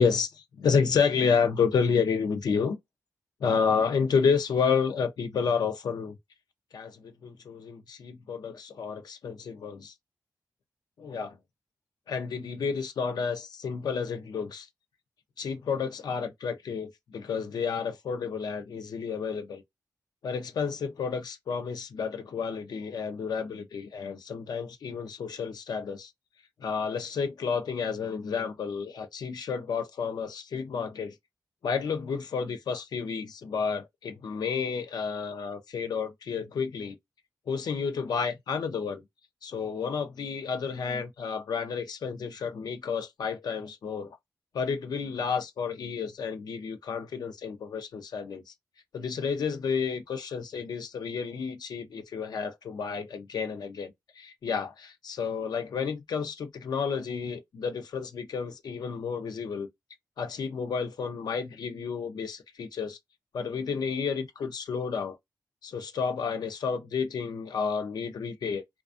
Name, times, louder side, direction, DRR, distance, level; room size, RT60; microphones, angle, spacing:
voice 1, 0.0-2.8 3.4-6.1 6.7-9.9 11.0-11.4 12.1-14.7 15.4-19.6 20.2-26.1 26.6-31.1 31.6-37.0 37.5-39.0 39.4-44.2 44.5-48.4 48.9-59.7 60.2-63.0 63.3-65.2 65.6-68.8, left 6 dB, 80° left, 0.5 m, -30 dB
2.5 x 2.2 x 2.4 m
wide cardioid pair, 115°, 7 cm